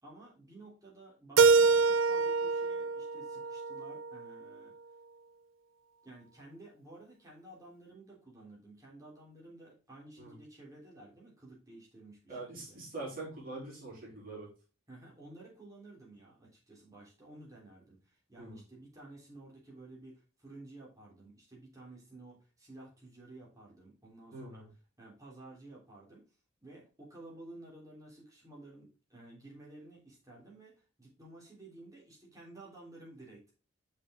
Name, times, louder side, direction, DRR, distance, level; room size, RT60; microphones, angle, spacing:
voice 1, 0.0-4.7 6.0-12.8 14.9-24.7 25.0-26.2 26.6-33.5, right 2 dB, 15° right, -4 dB, 3.3 m, -53 dB
Keyboard (musical), 1.4-4.3, right 4 dB, 80° right, 0.5 m, -26 dB
voice 2, 12.3-14.5 18.4-18.6 24.3-24.7, right 2 dB, 45° right, -5 dB, 4.0 m, -43 dB
6.4 x 5.6 x 3.7 m, 0.34 s
head